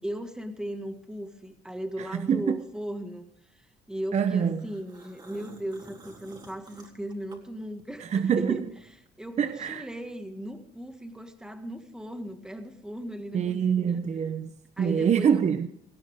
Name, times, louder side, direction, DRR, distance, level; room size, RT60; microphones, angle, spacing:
voice 1, 0.0-3.3 3.5-8.6 9.2-14.0 14.8-15.4, right 1 dB, 5° right, 1.9 m, -37 dB
voice 2, 2.0-2.5 4.1-4.7 8.0-8.7 9.4-9.9 13.3-15.7, right 7 dB, 40° right, 0.9 m, -25 dB
sound 1, 4.6-8.1 8.5-10.0, right 3 dB, 25° right, 3.7 m, -51 dB
18.5 x 16.5 x 3.7 m
cardioid pair, 110°, 17 cm